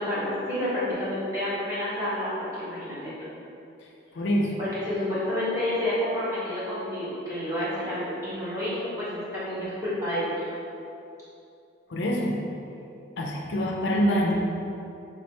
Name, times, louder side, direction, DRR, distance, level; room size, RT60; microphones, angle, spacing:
voice 1, 0.0-3.1 4.6-10.5, left 1 dB, 15° right, -11 dB, 1.3 m, -29 dB
voice 2, 4.1-4.5 11.9-12.4 13.2-14.4, equal, 65° left, -1 dB, 0.4 m, -25 dB
5.0 x 2.9 x 3.2 m, 2.7 s
head